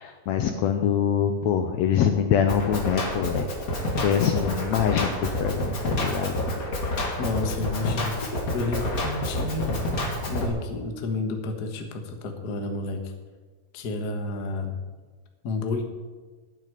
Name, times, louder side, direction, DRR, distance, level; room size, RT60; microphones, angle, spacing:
voice 1, 0.0-3.5 3.9-6.3, left 8 dB, 75° left, 6 dB, 1.7 m, -24 dB
Drum kit, 2.5-10.5, left 1 dB, 35° left, 1.7 m, -28 dB
voice 2, 7.2-8.2 8.5-9.9 10.3-13.1 13.7-14.8 15.4-15.8, left 3 dB, 55° left, 5 dB, 1.1 m, -30 dB
9.3 x 8.4 x 8.9 m, 1.4 s
omnidirectional pair, 3.7 m